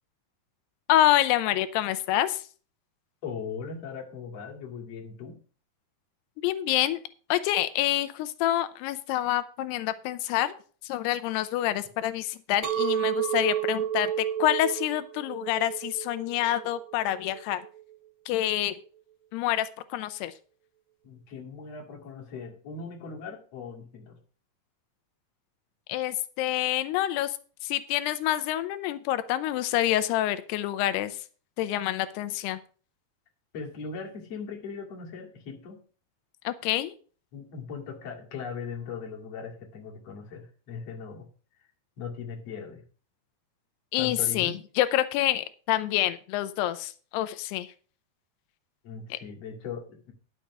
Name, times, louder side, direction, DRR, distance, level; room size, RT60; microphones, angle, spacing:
voice 1, 0.9-2.4 6.4-7.0 7.3-10.6 10.8-17.6 18.3-18.8 19.3-20.3 25.9-27.4 27.6-31.2 31.6-32.6 36.5-36.9 43.9-47.7 49.1-49.2, left 13 dB, 90° left, 12 dB, 2.8 m, -27 dB
voice 2, 3.2-5.4 21.0-24.2 33.5-35.8 37.3-41.3 42.0-42.8 44.0-44.6 48.8-50.1, left 5 dB, 45° left, 0 dB, 2.9 m, -39 dB
Chink clink, 12.6-17.8, right 11 dB, 75° right, 2.7 m, -31 dB
10.5 x 6.8 x 5.9 m, 0.40 s
omnidirectional pair, 4.6 m